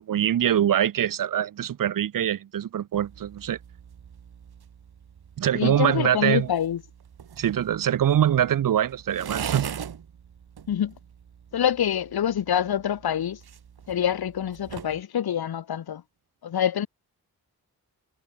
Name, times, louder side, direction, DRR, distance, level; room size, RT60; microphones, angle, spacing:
voice 1, 0.0-3.6 5.4-6.5 7.4-9.7, right 10 dB, 60° right, 0.6 m, -23 dB
sound 1, 2.9-15.0, right 8 dB, 85° right, 3.7 m, -41 dB
voice 2, 5.5-6.8 10.7-10.9 11.5-13.4 13.9-16.0 16.4-16.9, left 9 dB, 80° left, 1.2 m, -26 dB
cardioid pair, 75°, 37 cm